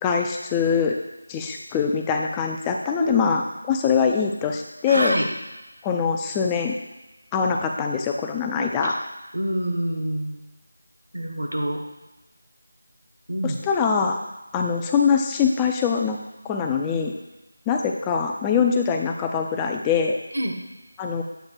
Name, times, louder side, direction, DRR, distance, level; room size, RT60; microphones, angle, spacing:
voice 1, 0.0-1.0 1.3-5.2 5.8-6.7 7.3-8.9 13.4-14.2 14.5-16.2 16.4-17.1 17.7-20.2 21.0-21.2, left 6 dB, 10° left, 2 dB, 0.4 m, -23 dB
voice 2, 4.9-5.3 8.6-8.9 9.3-10.4 11.1-11.8 13.3-13.6 20.3-20.5, right 1 dB, 85° right, 2 dB, 1.2 m, -26 dB
7.9 x 2.9 x 4.5 m, 1.0 s
figure-of-eight pair, 165°, 0 cm